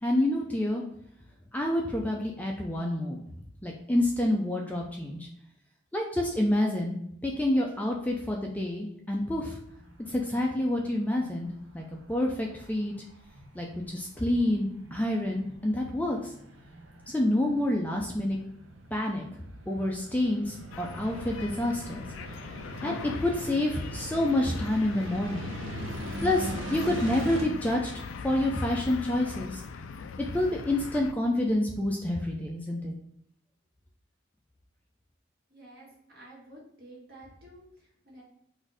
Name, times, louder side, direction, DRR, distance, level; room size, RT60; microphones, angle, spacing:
voice 1, 0.0-0.8 1.5-3.2 3.6-5.3 5.9-7.0 7.2-9.6 10.1-12.9 13.5-16.3 17.1-18.4 18.9-19.2 19.7-22.0 22.8-25.5 26.2-29.6 30.2-32.9, left 1 dB, 10° left, 0 dB, 0.4 m, -28 dB
sound 1, 9.7-27.4, right 1 dB, 90° right, 0.8 m, -42 dB
sound 2, 20.7-31.1, left 5 dB, 80° left, 0.4 m, -40 dB
voice 2, 35.5-38.2, right 1 dB, 50° right, -4 dB, 1.7 m, -51 dB
4.1 x 2.6 x 4.7 m, 0.74 s
head